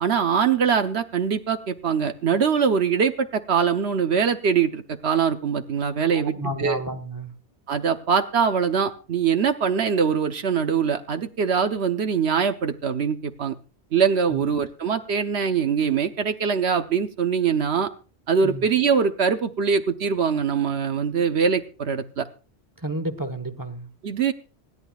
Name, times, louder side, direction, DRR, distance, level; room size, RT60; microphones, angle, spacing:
voice 1, 0.0-6.3 6.6-6.8 7.7-13.5 13.9-17.9 18.3-22.3 24.0-24.3, right 6 dB, 70° right, 1.1 m, -23 dB
voice 2, 6.1-7.3 14.3-14.5 18.4-18.7 22.8-23.9, right 1 dB, 20° right, 1.2 m, -31 dB
25.5 x 11.0 x 2.4 m
omnidirectional pair, 1.1 m